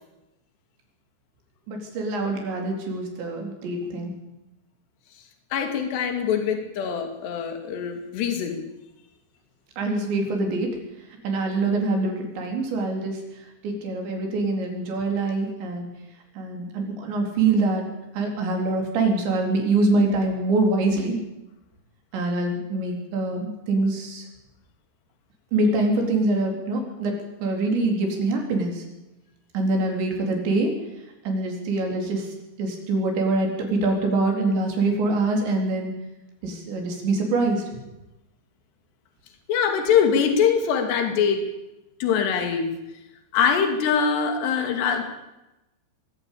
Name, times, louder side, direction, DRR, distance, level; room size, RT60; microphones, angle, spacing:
voice 1, 1.7-4.1 9.8-10.7 11.2-13.2 13.6-15.9 16.4-17.8 18.1-21.2 22.1-24.3 25.5-27.1 27.4-28.8 29.5-30.7 31.3-32.3 32.6-35.9 36.4-37.6, right 2 dB, 85° right, 2 dB, 6.3 m, -24 dB
voice 2, 5.5-8.6 39.5-41.5 42.0-42.7 43.3-45.0, left 7 dB, 75° left, 5 dB, 4.5 m, -23 dB
23.0 x 15.0 x 8.5 m, 0.96 s
omnidirectional pair, 5.0 m